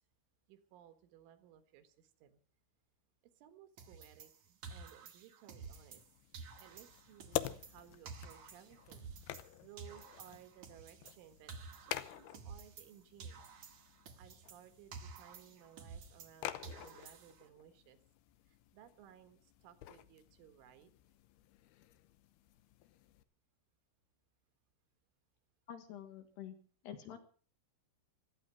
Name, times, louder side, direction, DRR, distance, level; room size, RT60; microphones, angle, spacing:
voice 1, 0.5-2.4 3.4-6.0 6.6-9.1 9.6-11.5 11.8-13.4 14.2-18.0 18.5-20.9, right 10 dB, 75° right, 10 dB, 3.9 m, -60 dB
sound 1, 3.8-6.1 6.3-9.5 9.8-12.9 13.2-16.4 16.6-17.5, right 5 dB, 55° right, 1.9 m, -52 dB
sound 2, 5.6-23.2, left 13 dB, 80° left, 2.3 m, -48 dB
voice 2, 25.7-26.6 26.8-27.2, left 10 dB, 65° left, 6 dB, 3.4 m, -48 dB
17.5 x 13.5 x 5.6 m, 0.41 s
omnidirectional pair, 5.7 m